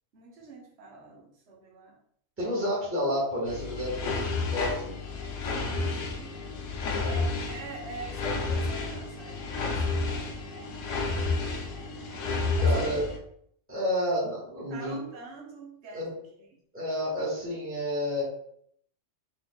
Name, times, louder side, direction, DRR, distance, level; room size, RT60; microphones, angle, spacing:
voice 1, 0.1-2.0 5.4-6.4 6.8-11.6 12.6-13.0 14.7-16.1, right 3 dB, 60° right, -2 dB, 1.1 m, -45 dB
voice 2, 2.4-4.9 6.8-7.1 12.6-13.0 13.7-15.0 15.9-16.1 16.7-18.2, equal, 10° right, -7 dB, 1.3 m, -30 dB
sound 1, 3.5-13.2, left 3 dB, 80° left, 1.0 m, -31 dB
4.8 x 2.6 x 2.2 m, 0.67 s
omnidirectional pair, 1.3 m